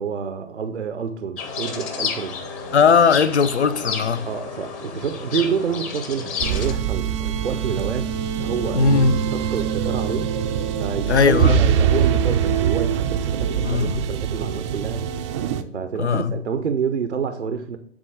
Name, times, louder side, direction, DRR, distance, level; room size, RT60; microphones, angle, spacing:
voice 1, 0.0-2.4 4.2-8.1 8.4-10.3 10.7-15.1 15.7-17.8, right 6 dB, 75° right, 0.8 m, -28 dB
sound 1, 1.4-6.7, left 5 dB, 20° left, 1.0 m, -31 dB
voice 2, 2.7-4.3 8.7-9.2 11.1-11.6 13.6-14.1 16.0-16.3, left 5 dB, 70° left, 0.7 m, -18 dB
sound 2, 6.4-15.6, right 8 dB, 25° right, 0.5 m, -23 dB
9.9 x 3.8 x 6.3 m
figure-of-eight pair, 115°, 35 cm